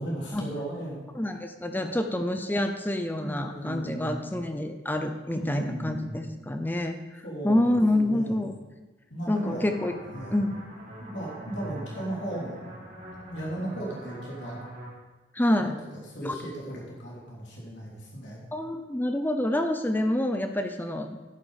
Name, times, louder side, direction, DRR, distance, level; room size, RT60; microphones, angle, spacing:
voice 1, 0.0-1.1 1.7-1.9 3.2-4.3 5.1-6.1 7.2-8.4 9.1-9.6 10.1-10.4 11.0-12.6 13.3-14.6 15.6-18.4, right 1 dB, 70° left, -5 dB, 3.3 m, -36 dB
voice 2, 1.1-7.0 7.4-8.5 9.3-10.0 10.3-10.6 15.3-15.8 16.2-16.4 18.5-21.1, left 1 dB, 10° left, 6 dB, 0.6 m, -27 dB
sound 1, 9.3-14.9, right 1 dB, 45° right, 4.0 m, -43 dB
11.0 x 8.6 x 5.0 m, 1.2 s
head